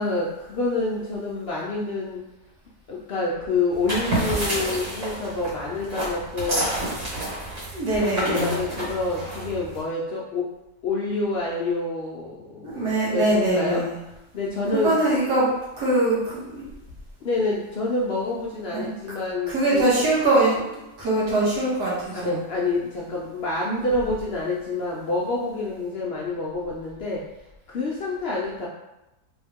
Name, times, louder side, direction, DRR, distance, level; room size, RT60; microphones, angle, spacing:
voice 1, 0.0-2.3 2.9-6.7 8.0-10.5 10.8-13.8 14.3-14.9 17.2-19.8 22.1-27.3 27.7-28.7, left 2 dB, 70° left, -4 dB, 0.6 m, -27 dB
sound 1, 3.7-9.8, right 1 dB, 50° right, 1.8 m, -29 dB
voice 2, 7.7-8.6 12.6-14.0 14.7-15.5 15.8-16.6 18.7-18.9 19.5-20.6 21.0-22.4, right 2 dB, 85° right, -7 dB, 2.0 m, -22 dB
3.5 x 3.1 x 3.5 m, 0.95 s
omnidirectional pair, 1.7 m